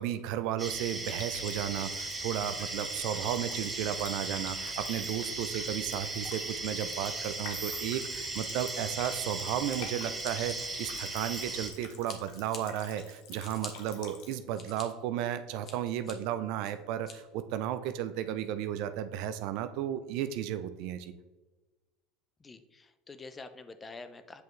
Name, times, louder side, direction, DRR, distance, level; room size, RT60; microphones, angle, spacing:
voice 1, 0.0-21.1, right 11 dB, 65° right, 11 dB, 0.4 m, -34 dB
sound 1, 0.6-11.7, right 2 dB, 20° right, 1.9 m, -37 dB
Water tap faucet, 1.1-14.4, left 7 dB, 70° left, 0.9 m, -50 dB
Scissors, 10.2-11.7 12.0-12.6 13.1-13.7 14.2-14.8 15.3-16.1 16.6-17.1, left 5 dB, 45° left, 1.3 m, -46 dB
voice 2, 22.4-24.4, left 3 dB, 25° left, 10 dB, 0.6 m, -47 dB
8.2 x 4.5 x 3.2 m, 1.2 s
hypercardioid pair, 90°, 0 cm